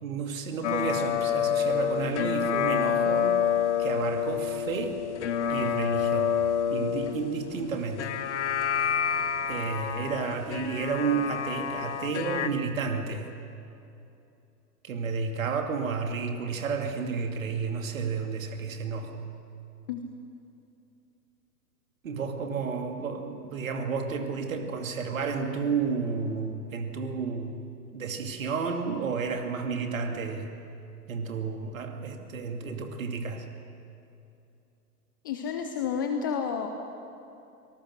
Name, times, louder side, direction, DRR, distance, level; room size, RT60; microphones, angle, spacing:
voice 1, 0.0-3.3 3.8-5.0 5.5-6.4 6.7-8.1 9.5-13.3 14.8-19.3 22.0-27.6 27.9-30.5 31.1-33.5, right 5 dB, 55° right, 5 dB, 2.5 m, -31 dB
sound 1, 0.6-12.5, left 8 dB, 45° left, 1.4 m, -28 dB
voice 2, 35.2-36.7, left 7 dB, 15° left, 6 dB, 0.5 m, -30 dB
25.0 x 19.5 x 6.5 m, 2.7 s
figure-of-eight pair, 110°, 48 cm